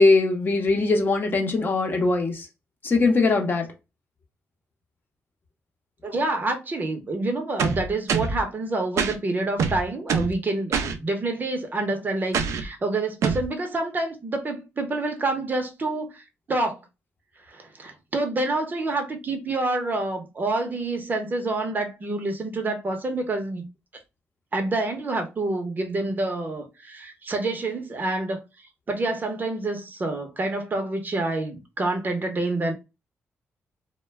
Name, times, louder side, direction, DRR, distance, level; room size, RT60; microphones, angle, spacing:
voice 1, 0.0-2.5 2.8-3.7, left 3 dB, 40° left, 0.7 m, -21 dB
voice 2, 6.0-16.8 17.5-23.6 24.5-28.4 28.9-32.7, right 2 dB, 35° right, 0.7 m, -27 dB
sound 1, 7.6-8.4 9.0-9.2 9.6-10.4 10.7-11.0 12.3-12.7 13.2-13.5, right 6 dB, 75° right, 0.4 m, -24 dB
2.2 x 2.1 x 3.2 m
cardioid pair, 80°, 5 cm